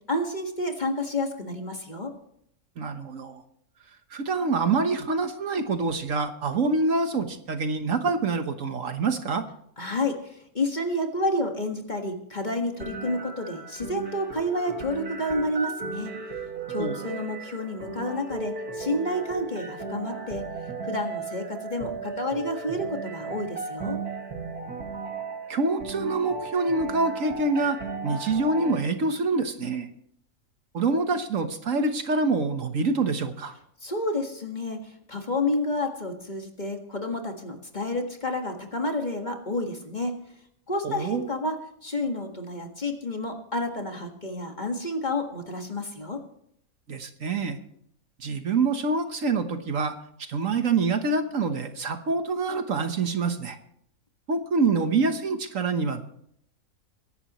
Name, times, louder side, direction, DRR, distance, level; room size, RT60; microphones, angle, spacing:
voice 1, 0.1-2.1 9.8-16.1 16.7-20.4 20.8-24.0 33.8-40.2 40.7-46.2, left 1 dB, 30° left, 3 dB, 1.8 m, -30 dB
voice 2, 2.8-3.4 4.1-9.4 16.8-17.0 25.5-27.8 28.0-29.9 30.7-33.5 40.8-41.2 46.9-47.6 48.2-53.6 54.3-56.0, right 3 dB, 60° right, 8 dB, 1.5 m, -26 dB
sound 1, 12.8-28.8, right 4 dB, 90° right, 2.7 m, -36 dB
23.0 x 11.0 x 3.0 m, 0.70 s
omnidirectional pair, 1.6 m